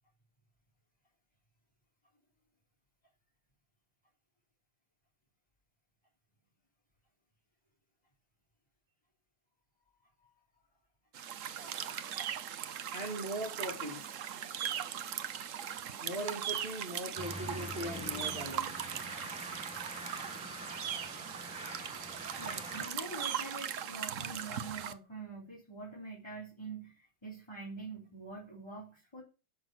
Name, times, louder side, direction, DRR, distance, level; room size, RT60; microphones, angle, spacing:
sound 1, 11.1-24.9, right 9 dB, 60° right, 0.9 m, -39 dB
voice 1, 11.6-12.0 12.9-14.4 14.7-14.9 16.0-19.0 19.8-20.0 20.2-20.4, right 1 dB, 30° right, -1 dB, 2.9 m, -41 dB
sound 2, 17.2-22.9, equal, 5° right, 2.1 m, -45 dB
voice 2, 22.4-29.2, right 3 dB, 15° left, -5 dB, 3.7 m, -45 dB
11.0 x 6.4 x 6.1 m, 0.30 s
omnidirectional pair, 2.1 m